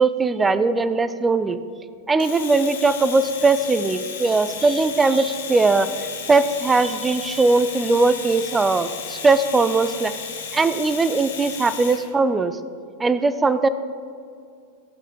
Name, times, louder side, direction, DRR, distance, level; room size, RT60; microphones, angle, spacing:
voice 1, 0.0-1.6 2.1-5.9 6.3-10.2 10.5-12.6 13.0-13.7, right 3 dB, 15° right, 14 dB, 0.5 m, -19 dB
Domestic sounds home sounds, 2.2-12.1, left 7 dB, 60° left, 1.2 m, -34 dB
15.5 x 6.4 x 5.1 m, 2.4 s
figure-of-eight pair, 90°, 0 cm